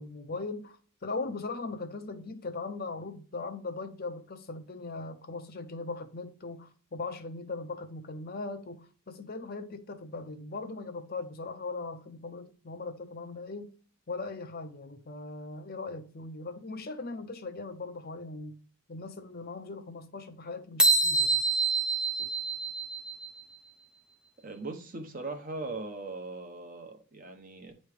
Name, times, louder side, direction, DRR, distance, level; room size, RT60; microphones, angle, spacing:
voice 1, 0.0-13.7 14.1-18.6 18.9-21.4 22.2-22.3, left 3 dB, 45° left, 0.7 m, -39 dB
sound 1, 20.8-23.4, right 3 dB, 5° right, 0.5 m, -26 dB
voice 2, 24.4-27.7, right 3 dB, 40° right, 0.9 m, -39 dB
9.5 x 3.2 x 4.9 m
head